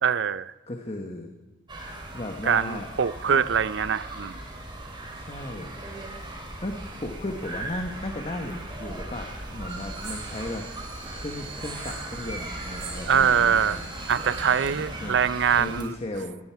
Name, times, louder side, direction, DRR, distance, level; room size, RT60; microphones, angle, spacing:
voice 1, 0.0-0.5 2.4-4.4 13.1-13.8 14.1-15.9, right 7 dB, 60° right, 16 dB, 0.5 m, -23 dB
voice 2, 0.7-1.3 2.1-2.9 3.3-3.4 5.1-5.7 6.6-10.6 11.1-13.9 15.0-15.2 15.6-16.4, left 1 dB, 30° left, 3 dB, 1.2 m, -35 dB
sound 1, 1.7-15.8, right 1 dB, 25° right, 2.9 m, -38 dB
sound 2, 9.7-14.7, right 5 dB, 80° right, 3.9 m, -42 dB
17.5 x 17.0 x 4.6 m, 1.1 s
head